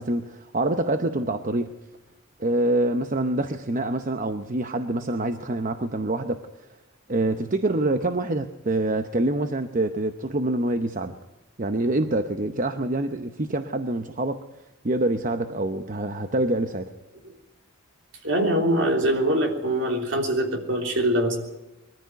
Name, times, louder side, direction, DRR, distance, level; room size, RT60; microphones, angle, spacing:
voice 1, 0.0-1.7 2.4-6.4 7.1-11.2 11.6-14.4 14.8-16.9, right 2 dB, 40° right, 8 dB, 0.8 m, -26 dB
voice 2, 18.2-21.4, right 1 dB, 60° right, 2 dB, 3.5 m, -23 dB
22.0 x 14.0 x 9.4 m, 1.0 s
head